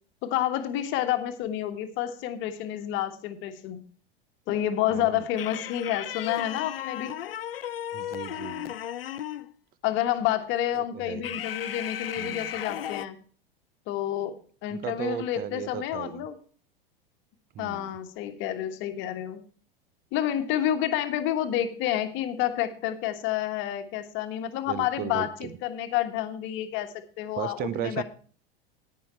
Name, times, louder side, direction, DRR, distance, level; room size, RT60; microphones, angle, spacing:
voice 1, 0.2-3.8 4.5-7.1 9.8-13.2 13.9-16.4 17.6-19.4 20.1-28.0, left 11 dB, 45° left, 8 dB, 1.4 m, -29 dB
voice 2, 4.9-5.2 7.9-8.7 10.8-11.4 12.2-12.5 14.7-16.3 17.5-17.9 24.7-25.5 27.3-28.0, right 10 dB, 30° right, 16 dB, 0.8 m, -36 dB
sound 1, 5.4-9.5 11.2-13.1, left 11 dB, 75° left, 0.6 m, -35 dB
10.5 x 9.6 x 4.4 m, 0.44 s
figure-of-eight pair, 85°, 29 cm